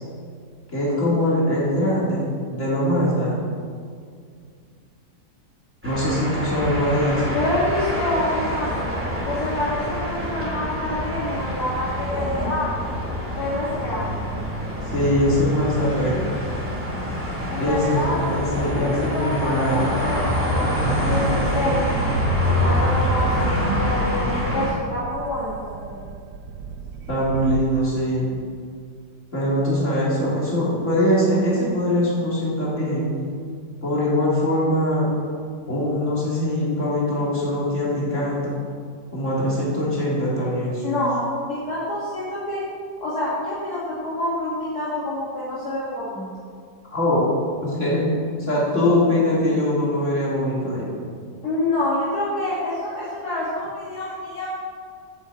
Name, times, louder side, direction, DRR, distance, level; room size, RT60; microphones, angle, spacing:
voice 1, 0.7-3.3 5.8-7.4 14.9-16.3 17.6-20.0 27.1-28.3 29.3-33.1 33.8-35.1 35.7-38.6 39.1-40.8 46.9-47.2 47.6-48.0 48.4-50.9, left 1 dB, 45° left, -7 dB, 3.7 m, -22 dB
sound 1, 5.8-24.7, left 1 dB, 5° right, 2.7 m, -26 dB
voice 2, 7.3-8.9 9.3-12.7 13.4-14.2 17.5-18.2 18.7-21.8 22.4-26.1 40.8-42.7 43.0-46.3 51.4-54.5, left 1 dB, 60° left, -8 dB, 2.5 m, -27 dB
sound 2, 20.7-27.6, right 5 dB, 70° right, 1.2 m, -31 dB
9.3 x 8.0 x 7.8 m, 2.2 s
omnidirectional pair, 1.9 m